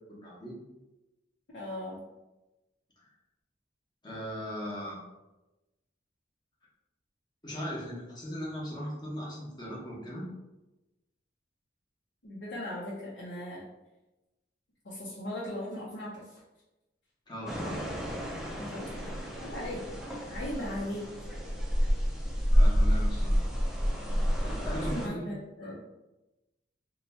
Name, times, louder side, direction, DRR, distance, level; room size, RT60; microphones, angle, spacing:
voice 1, 0.1-0.6 4.0-5.1 7.4-10.3 17.3-17.8 22.5-23.4 24.4-25.2 25.6-25.8, equal, 25° left, -5 dB, 1.0 m, -38 dB
voice 2, 1.5-2.0 12.2-13.6 14.8-16.4 18.6-19.1 19.4-21.0 24.8-25.8, left 1 dB, 80° left, -7 dB, 0.7 m, -38 dB
sound 1, 17.5-25.1, equal, 5° right, 0.4 m, -29 dB
2.9 x 2.2 x 4.1 m, 1.0 s
head